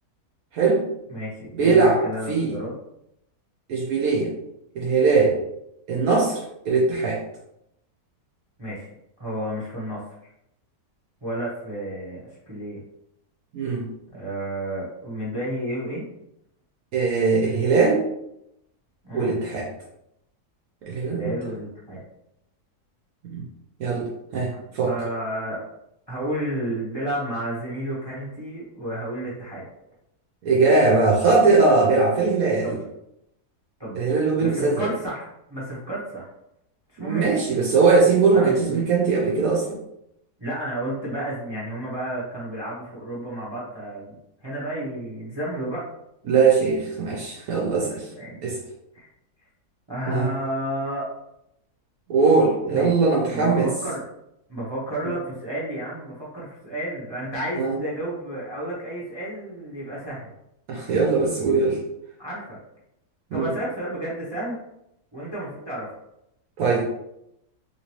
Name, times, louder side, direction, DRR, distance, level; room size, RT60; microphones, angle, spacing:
voice 1, 0.5-0.8 1.5-2.0 2.3-2.5 3.7-4.3 4.8-5.4 5.9-6.4 6.7-7.2 13.5-13.8 16.9-18.0 19.1-19.7 20.9-21.3 23.3-23.4 23.8-24.9 30.4-32.8 33.9-34.9 37.0-39.7 46.3-48.0 48.4-48.5 50.1-50.3 52.1-53.7 57.6-57.7 60.7-61.8 63.3-63.5 66.6-66.9, right 4 dB, 70° right, -2 dB, 1.1 m, -20 dB
voice 2, 1.1-2.7 8.6-8.9 9.2-10.0 11.2-12.2 12.5-12.8 14.1-16.0 19.0-19.4 21.1-22.0 24.8-25.6 26.1-29.7 32.6-32.8 33.8-34.0 34.4-36.3 36.9-37.3 38.3-38.8 40.4-44.1 44.4-45.9 48.0-48.3 48.9-49.1 49.9-51.1 52.7-52.9 53.3-54.0 54.5-60.3 62.2-62.6 63.3-64.6 65.1-65.9, right 1 dB, 25° right, -6 dB, 0.6 m, -31 dB
3.0 x 2.9 x 3.0 m, 0.81 s
omnidirectional pair, 1.6 m